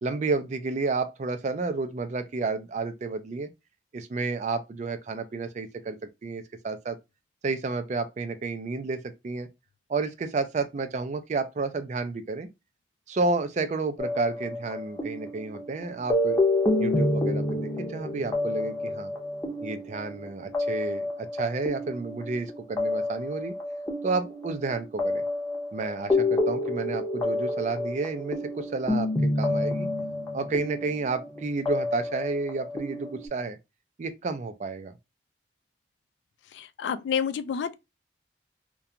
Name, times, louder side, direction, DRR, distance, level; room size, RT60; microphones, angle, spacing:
voice 1, 0.0-3.5 3.9-6.0 6.2-7.0 7.4-9.5 9.9-12.5 13.1-16.4 16.8-19.1 19.6-23.5 24.0-25.2 25.7-29.9 30.3-33.6 34.0-34.9, right 3 dB, 40° right, 0.4 m, -31 dB
sound 1, 14.0-33.3, left 2 dB, 15° left, 0.6 m, -29 dB
voice 2, 36.5-37.7, left 7 dB, 85° left, 0.3 m, -29 dB
2.4 x 2.2 x 2.8 m
head